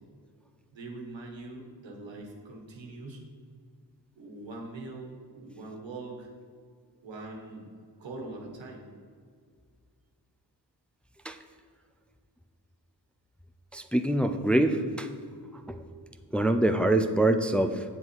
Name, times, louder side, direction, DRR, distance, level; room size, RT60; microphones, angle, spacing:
voice 1, 0.7-3.2 4.1-6.3 7.0-7.7 8.0-8.9, right 2 dB, 85° right, 1 dB, 1.6 m, -42 dB
voice 2, 13.7-15.1 15.7-15.9 16.3-17.8, right 1 dB, 5° left, 7 dB, 0.5 m, -25 dB
8.0 x 7.2 x 4.7 m, 2.1 s
cardioid pair, 60°, 44 cm